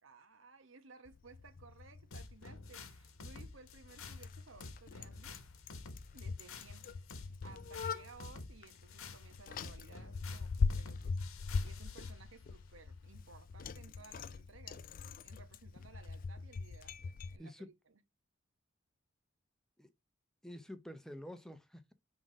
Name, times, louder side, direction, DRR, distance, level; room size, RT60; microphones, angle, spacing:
voice 1, 0.0-5.4 6.1-11.2 11.6-14.8 15.2-18.0, right 4 dB, 70° right, 1.2 m, -58 dB
Bicycle, 1.1-17.4, left 4 dB, 40° left, 0.3 m, -42 dB
sound 1, 2.1-12.2, left 3 dB, 85° left, 1.1 m, -50 dB
voice 2, 20.4-21.9, equal, 5° left, 0.7 m, -48 dB
5.7 x 3.8 x 5.1 m
head